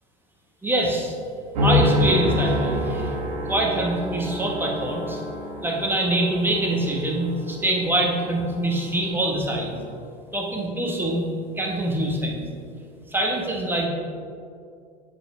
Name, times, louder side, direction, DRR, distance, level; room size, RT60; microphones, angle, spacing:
voice 1, 0.6-1.1 1.6-3.1 3.4-5.2 5.6-9.7 10.3-11.2 11.6-12.4 13.1-13.9, right 1 dB, 10° right, -1 dB, 1.7 m, -24 dB
sound 1, 1.5-10.0, left 1 dB, 75° right, 1.5 m, -27 dB
8.1 x 4.8 x 5.1 m, 2.3 s
hypercardioid pair, 80°, 20 cm